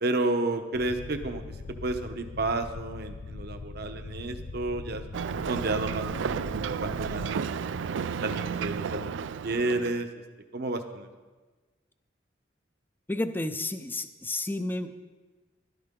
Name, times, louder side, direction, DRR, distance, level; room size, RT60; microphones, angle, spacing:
voice 1, 0.0-1.4 1.8-5.0 5.5-6.4 6.8-7.6 8.2-9.1 9.4-10.1 10.5-11.1, right 2 dB, 60° right, 6 dB, 0.9 m, -31 dB
sound 1, 0.7-7.3, left 3 dB, 90° left, 0.6 m, -41 dB
Ocean, 5.1-10.0, right 6 dB, 80° right, 0.4 m, -32 dB
voice 2, 13.1-15.0, left 2 dB, 10° left, 9 dB, 0.5 m, -31 dB
14.5 x 12.5 x 3.7 m, 1.3 s
head